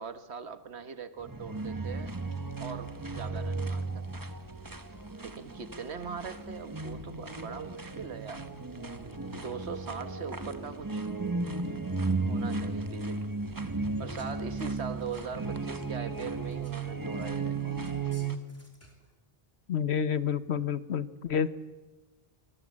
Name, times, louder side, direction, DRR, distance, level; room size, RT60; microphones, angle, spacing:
voice 1, 0.0-2.1 2.6-4.0 5.2-8.5 9.3-11.0 12.2-13.2 14.0-17.7, right 6 dB, 90° right, 11 dB, 1.5 m, -41 dB
sound 1, 1.2-18.4, right 3 dB, 20° right, 1.1 m, -35 dB
sound 2, 14.1-14.3 14.6-15.3 16.5-16.9 17.8-19.1, left 1 dB, 15° left, 3.2 m, -58 dB
voice 2, 19.7-21.5, left 7 dB, 85° left, 14 dB, 1.2 m, -29 dB
25.0 x 20.5 x 7.5 m, 1.2 s
omnidirectional pair, 1.1 m